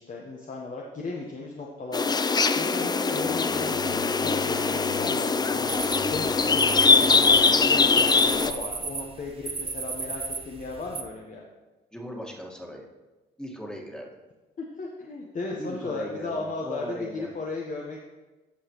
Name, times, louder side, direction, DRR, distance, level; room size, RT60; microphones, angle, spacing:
voice 1, 0.0-2.1 2.6-3.9 4.2-5.7 6.0-11.4 14.8-18.0, left 3 dB, 45° left, -1 dB, 1.1 m, -36 dB
sound 1, 1.9-8.5, left 4 dB, 20° left, 0.4 m, -22 dB
sound 2, 2.8-8.8, left 5 dB, 85° left, 2.3 m, -44 dB
sound 3, 5.7-11.0, right 4 dB, 30° right, 0.8 m, -35 dB
voice 2, 11.9-12.8 13.4-14.1 15.6-17.3, equal, 5° left, 0 dB, 1.7 m, -38 dB
14.0 x 4.9 x 3.1 m, 1.2 s
supercardioid pair, 65°, 19 cm